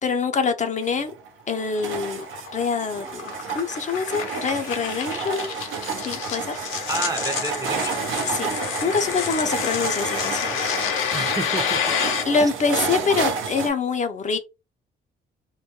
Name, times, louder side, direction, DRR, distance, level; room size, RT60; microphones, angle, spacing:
voice 1, 0.0-1.1 1.5-2.2 2.5-5.4 6.0-6.6 8.3-8.5 8.8-11.0 12.2-14.4, left 5 dB, 40° left, 0.4 m, -25 dB
sound 1, 0.8-13.7, right 6 dB, 80° right, 0.6 m, -31 dB
sound 2, 1.5-12.2, left 8 dB, 90° left, 0.6 m, -29 dB
voice 2, 6.9-8.0 9.3-9.4 11.1-11.9 12.4-12.5, right 2 dB, 20° right, 0.5 m, -30 dB
2.2 x 2.1 x 2.8 m
cardioid pair, 90°, 20 cm